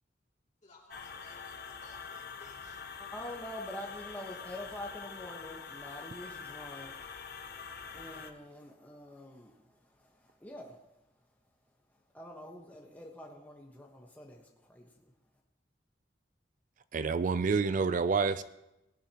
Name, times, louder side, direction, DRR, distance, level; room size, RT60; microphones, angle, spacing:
voice 1, 0.6-2.8, left 2 dB, 40° left, -2 dB, 2.7 m, -57 dB
sound 1, 0.9-8.3, left 6 dB, 60° left, 0.7 m, -45 dB
voice 2, 3.0-6.9 7.9-9.5 10.4-10.7 12.1-14.4 14.7-14.9, left 1 dB, 10° left, -1 dB, 1.2 m, -45 dB
voice 3, 16.9-18.4, right 5 dB, 45° right, 13 dB, 0.4 m, -28 dB
18.5 x 10.5 x 3.0 m, 0.92 s
head